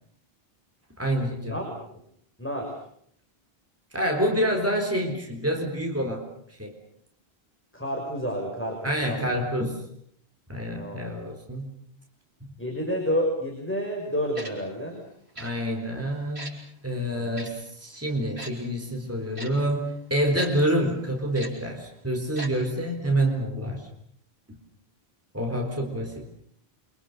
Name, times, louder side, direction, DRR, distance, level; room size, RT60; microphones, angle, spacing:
voice 1, 1.0-1.6 3.9-6.3 6.6-6.8 8.8-9.8 10.5-11.7 15.4-16.5 16.8-23.9 25.3-26.3, right 1 dB, 15° right, 2 dB, 4.1 m, -27 dB
voice 2, 2.4-2.7 7.7-9.3 10.8-11.0 12.6-15.0 17.1-17.4, equal, 10° left, 0 dB, 6.3 m, -30 dB
Tick-tock, 14.3-14.5 15.3-15.5 16.3-16.5 17.3-17.5 18.4-18.5 19.3-19.5 20.4-20.5 21.3-21.5 22.3-22.5 22.8-22.9, right 1 dB, 80° right, 6.3 m, -37 dB
29.0 x 25.5 x 6.8 m, 0.67 s
omnidirectional pair, 1.1 m